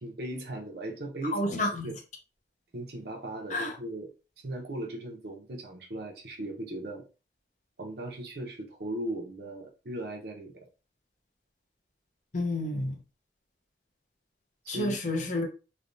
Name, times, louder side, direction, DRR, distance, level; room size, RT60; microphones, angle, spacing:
voice 1, 0.0-1.4 1.8-2.0 2.7-4.1 4.4-7.0 7.8-10.5 14.6-15.0, right 1 dB, 60° right, 0.7 m, -37 dB
voice 2, 1.3-1.9 3.5-3.7 12.3-13.0 14.7-15.5, left 1 dB, 40° left, 0.7 m, -30 dB
3.3 x 2.3 x 2.6 m
head